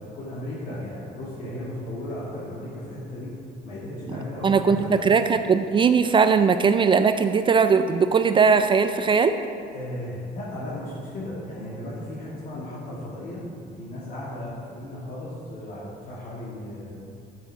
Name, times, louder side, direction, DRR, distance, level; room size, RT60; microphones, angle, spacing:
voice 1, 0.0-3.3 3.6-5.1 9.7-16.9, left 1 dB, 55° left, -8 dB, 2.3 m, -35 dB
voice 2, 4.4-9.4, right 5 dB, 30° right, 9 dB, 0.4 m, -19 dB
8.5 x 7.9 x 4.8 m, 2.4 s
cardioid pair, 110°, 17 cm